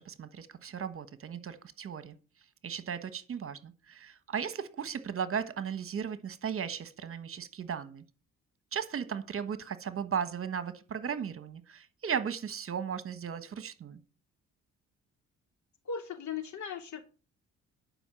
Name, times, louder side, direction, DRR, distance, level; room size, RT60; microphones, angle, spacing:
voice 1, 0.0-2.2 2.6-8.0 8.7-14.0, right 7 dB, 45° right, 1.3 m, -36 dB
voice 2, 15.8-17.0, left 6 dB, 70° left, 2.9 m, -37 dB
11.0 x 5.4 x 7.6 m
cardioid pair, 90°, 30 cm